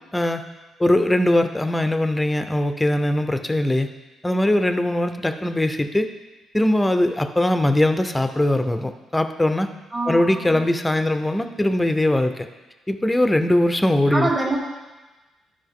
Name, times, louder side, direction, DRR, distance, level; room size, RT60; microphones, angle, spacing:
voice 1, 0.1-0.4 0.8-3.9 4.2-6.1 6.5-9.7 10.1-12.5 12.9-14.3, left 1 dB, 10° left, 8 dB, 0.6 m, -21 dB
voice 2, 9.9-10.6 14.1-14.6, right 2 dB, 25° right, -6 dB, 1.8 m, -25 dB
12.0 x 5.1 x 3.7 m, 1.2 s
cardioid pair, 90°, 0 cm